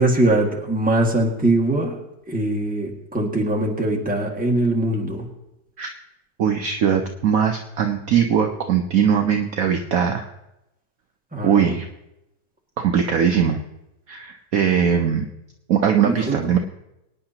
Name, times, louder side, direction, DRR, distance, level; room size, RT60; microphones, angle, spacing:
voice 1, 0.0-2.0 2.3-5.2 11.3-11.7 16.0-16.5, right 1 dB, 5° right, -2 dB, 1.7 m, -21 dB
voice 2, 6.4-10.3 11.4-11.9 12.8-13.6 14.1-15.3 15.7-16.6, right 8 dB, 60° right, 4 dB, 1.0 m, -20 dB
23.5 x 9.7 x 2.9 m, 0.89 s
omnidirectional pair, 1.9 m